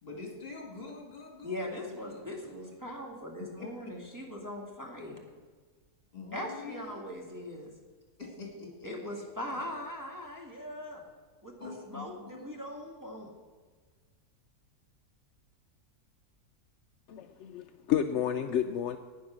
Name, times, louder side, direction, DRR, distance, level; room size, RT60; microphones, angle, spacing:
voice 1, 0.0-2.9 3.4-3.9 6.1-7.1 8.2-9.6 11.6-12.6, left 4 dB, 35° left, 0 dB, 2.8 m, -46 dB
voice 2, 1.4-5.2 6.3-7.7 8.8-11.0 11.4-13.3, left 1 dB, 10° right, -1 dB, 1.8 m, -40 dB
voice 3, 17.1-19.0, left 9 dB, 65° left, 8 dB, 0.7 m, -30 dB
11.0 x 9.4 x 6.1 m, 1.5 s
omnidirectional pair, 1.7 m